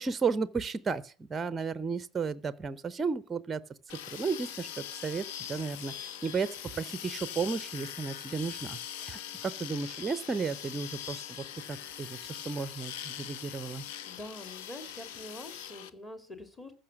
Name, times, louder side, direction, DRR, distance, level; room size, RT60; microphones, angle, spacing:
voice 1, 0.0-3.6 4.1-6.5 6.8-13.8, right 5 dB, 20° right, 0.8 m, -34 dB
sound 1, 3.9-15.9, left 10 dB, 55° left, 0.9 m, -42 dB
voice 2, 14.0-16.7, left 1 dB, 15° left, 2.8 m, -45 dB
14.5 x 5.6 x 8.3 m
figure-of-eight pair, 80°, 0 cm